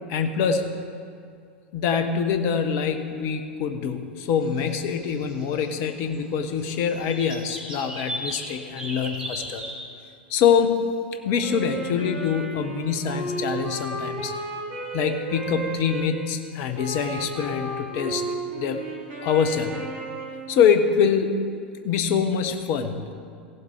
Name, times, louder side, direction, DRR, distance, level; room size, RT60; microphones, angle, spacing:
voice 1, 0.1-0.8 1.7-9.6 10.3-10.9 11.2-14.3 14.9-18.2 18.5-18.8 19.2-19.8 20.5-21.3 21.8-23.1, left 7 dB, 50° left, 8 dB, 1.0 m, -24 dB
sound 1, 4.3-5.9 6.1-6.2 6.5-8.5 8.8-9.7, right 1 dB, 15° right, 3.3 m, -36 dB
Wind instrument woodwind instrument, 11.4-16.1 16.7-20.7, right 2 dB, 50° right, 2.8 m, -33 dB
16.5 x 7.6 x 4.7 m, 2.3 s
figure-of-eight pair, 85°, 6 cm